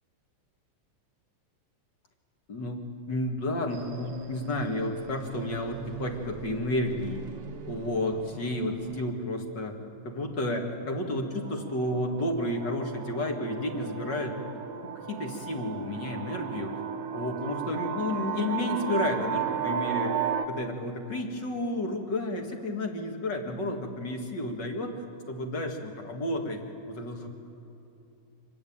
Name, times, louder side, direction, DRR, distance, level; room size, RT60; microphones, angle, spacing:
voice 1, 2.5-2.8 3.1-7.3 7.7-9.7 10.0-16.8 17.1-26.6 26.9-27.3, left 1 dB, 35° left, 3 dB, 2.3 m, -31 dB
sound 1, 3.7-9.1, right 8 dB, 90° right, 1.2 m, -44 dB
sound 2, 11.5-20.5, right 8 dB, 55° right, 2.1 m, -34 dB
26.0 x 20.5 x 8.8 m, 2.8 s
omnidirectional pair, 4.0 m